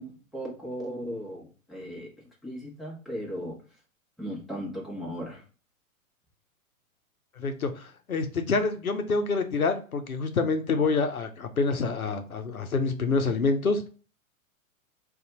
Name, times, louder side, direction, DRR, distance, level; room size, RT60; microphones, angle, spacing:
voice 1, 0.0-2.1 2.4-3.6 4.2-5.4, equal, ahead, -4 dB, 0.9 m, -37 dB
voice 2, 7.4-13.9, left 4 dB, 85° left, 7 dB, 0.6 m, -27 dB
2.6 x 2.4 x 3.9 m, 0.37 s
figure-of-eight pair, 100°, 41 cm